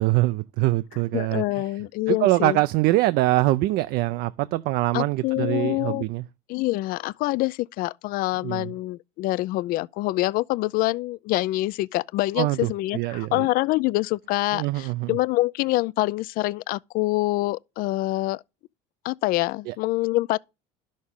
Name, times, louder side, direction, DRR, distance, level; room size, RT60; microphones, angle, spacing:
voice 1, 0.0-1.7 2.1-6.2 8.4-8.7 12.4-13.5 14.5-15.2 19.7-19.8, right 18 dB, 70° right, 0.4 m, -24 dB
voice 2, 1.1-2.6 4.9-6.0 6.5-18.4 19.0-20.4, left 19 dB, 60° left, 0.4 m, -25 dB
11.5 x 6.4 x 3.6 m
cardioid pair, 125°, 17 cm